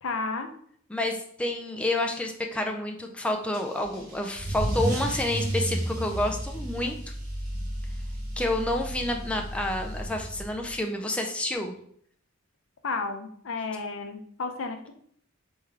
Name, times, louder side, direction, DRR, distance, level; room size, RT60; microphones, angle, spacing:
voice 1, 0.0-0.5 12.8-14.9, left 3 dB, 65° left, 6 dB, 0.5 m, -32 dB
voice 2, 0.9-7.0 8.4-11.7, left 1 dB, 5° left, 2 dB, 0.3 m, -29 dB
Car / Engine starting / Accelerating revving vroom, 3.5-10.7, right 1 dB, 40° right, 1.1 m, -32 dB
3.5 x 3.3 x 3.3 m, 0.64 s
head